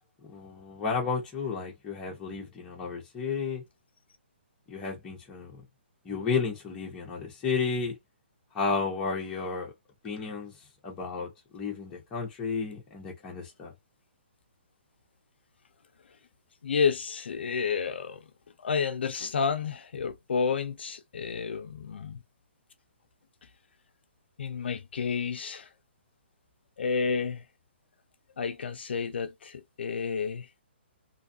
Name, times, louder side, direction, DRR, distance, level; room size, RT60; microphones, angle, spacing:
voice 1, 0.2-3.6 4.7-5.6 6.0-8.0 8.5-9.7 10.0-10.5 10.8-13.7, left 5 dB, 10° left, 0.7 m, -32 dB
voice 2, 16.6-18.3 18.6-22.2 24.4-25.7 26.8-27.5 28.4-30.5, left 5 dB, 60° left, 0.4 m, -30 dB
2.6 x 2.3 x 2.6 m
hypercardioid pair, 175°, 6 cm